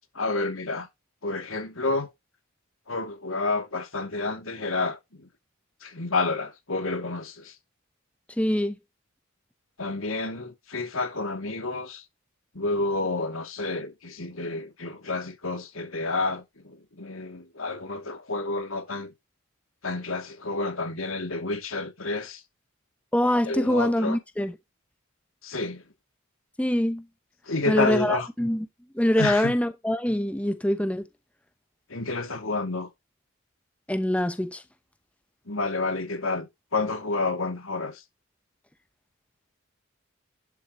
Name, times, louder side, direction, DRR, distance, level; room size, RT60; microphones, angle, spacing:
voice 1, 0.1-0.9 1.2-2.1 2.9-5.3 5.8-7.5 9.8-12.0 12.5-19.1 19.8-22.4 23.4-24.2 25.4-25.8 27.5-28.3 29.2-29.5 31.9-32.9 35.5-36.5 36.7-37.9, left 3 dB, 85° left, 2.7 m, -29 dB
voice 2, 8.4-8.8 23.1-24.6 26.6-27.0 27.7-28.7 28.9-31.0 33.9-34.6, equal, 5° left, 0.9 m, -24 dB
11.5 x 7.9 x 3.1 m
head